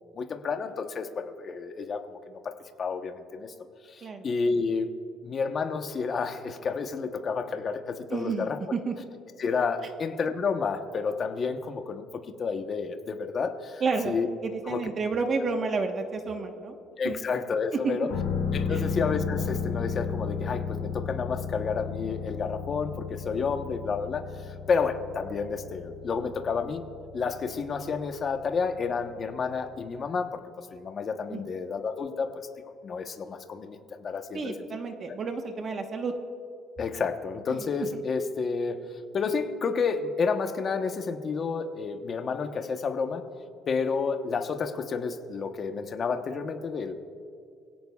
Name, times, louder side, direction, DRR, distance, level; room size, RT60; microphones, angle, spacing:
voice 1, 0.1-2.5 2.8-3.5 3.8-4.9 5.2-8.6 9.4-14.3 14.7-14.8 17.0-18.1 18.5-26.8 27.1-32.5 32.8-34.5 36.8-43.3 43.7-46.9, left 5 dB, 35° left, 6 dB, 1.0 m, -30 dB
voice 2, 8.1-8.9 13.8-14.2 14.4-16.8 17.0-17.2 17.8-18.0 18.7-18.9 31.3-31.4 34.3-36.1 37.5-37.7 37.9-38.0, right 4 dB, 35° right, 4 dB, 1.2 m, -30 dB
sound 1, 18.1-29.7 30.0-30.1, left 6 dB, 85° left, 1.7 m, -34 dB
24.5 x 17.0 x 2.4 m, 2.4 s
cardioid pair, 135°, 0 cm